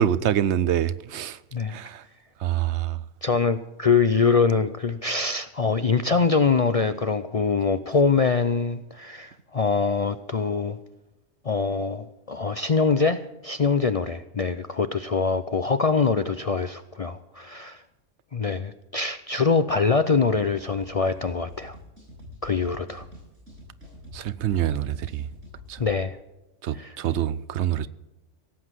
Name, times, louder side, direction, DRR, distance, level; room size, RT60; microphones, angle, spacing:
voice 1, 0.0-1.4 1.7-2.0 2.4-3.0 24.1-25.3 25.7-25.8 26.6-27.9, right 10 dB, 70° right, 0.9 m, -25 dB
voice 2, 3.2-10.8 11.4-17.8 18.3-21.8 22.4-23.0 25.8-26.2 26.7-27.0, left 4 dB, 50° left, 0.4 m, -24 dB
sound 1, 20.4-25.9, left 1 dB, 90° right, 7.9 m, -46 dB
17.0 x 8.2 x 7.5 m
omnidirectional pair, 1.2 m